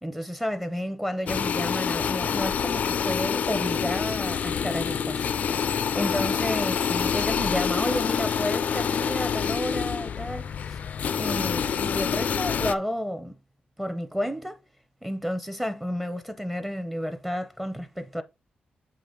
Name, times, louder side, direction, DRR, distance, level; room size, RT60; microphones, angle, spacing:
voice 1, 0.0-10.8 11.2-13.3 13.8-14.6 15.0-18.2, equal, 5° right, 0.7 m, -31 dB
sound 1, 1.3-12.7, left 7 dB, 60° left, 0.4 m, -27 dB
7.8 x 2.9 x 5.1 m
wide cardioid pair, 140°, 3 cm